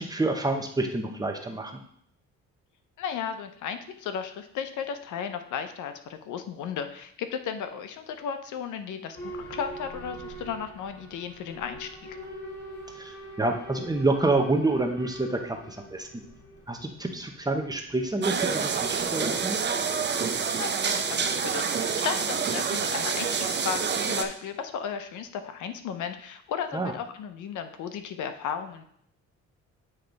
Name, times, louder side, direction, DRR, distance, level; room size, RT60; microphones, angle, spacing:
voice 1, 0.0-1.8 13.0-16.1 16.7-19.6 26.7-26.9, right 2 dB, 15° right, 3 dB, 0.9 m, -28 dB
voice 2, 3.0-12.2 20.6-28.8, left 7 dB, 80° left, 8 dB, 0.7 m, -35 dB
Boat Water vehicle / Alarm, 9.1-19.8, right 1 dB, 35° left, 2.2 m, -44 dB
sound 1, 18.2-24.2, right 6 dB, 35° right, 0.7 m, -27 dB
8.9 x 3.2 x 3.9 m, 0.66 s
cardioid pair, 90°, 30 cm